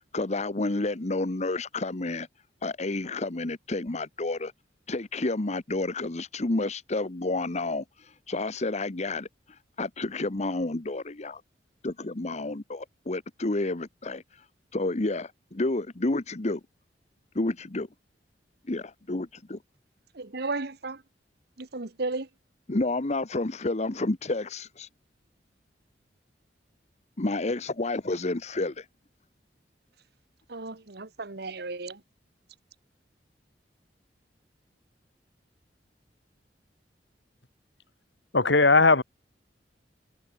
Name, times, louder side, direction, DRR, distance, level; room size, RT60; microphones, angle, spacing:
voice 1, 0.1-2.3 2.6-4.5 4.9-11.4 11.8-14.4 14.7-16.6 17.3-17.9 18.7-19.6 22.7-24.9 27.2-28.9, left 2 dB, 40° left, 1.0 m, -30 dB
voice 2, 20.1-21.0 21.6-22.3 30.5-32.0, right 3 dB, 65° right, 1.5 m, -34 dB
voice 3, 38.3-39.0, left 3 dB, 80° left, 3.0 m, -18 dB
head